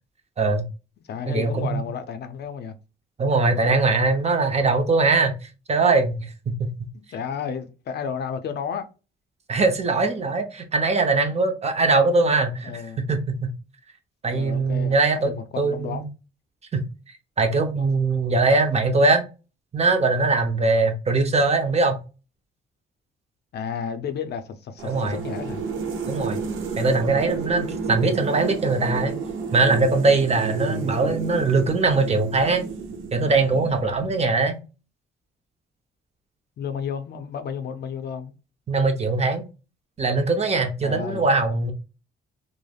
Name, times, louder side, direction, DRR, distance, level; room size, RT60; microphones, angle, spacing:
voice 1, 0.4-0.7 1.3-1.8 3.2-5.4 5.7-6.7 9.5-13.5 14.2-15.3 15.6-16.1 16.7-16.8 17.4-19.2 19.7-22.0 24.8-25.2 26.1-26.4 26.8-29.1 29.5-32.6 33.1-34.6 38.7-39.4 40.0-41.7, right 3 dB, 35° right, 0.6 m, -21 dB
voice 2, 1.1-2.7 7.1-8.9 12.6-13.0 14.3-16.1 23.5-25.6 30.5-30.9 36.6-38.3 40.8-41.2, left 7 dB, 55° left, 0.5 m, -32 dB
sound 1, 24.8-34.1, right 5 dB, 85° right, 0.7 m, -31 dB
3.3 x 2.0 x 2.2 m
cardioid pair, 90°, 20 cm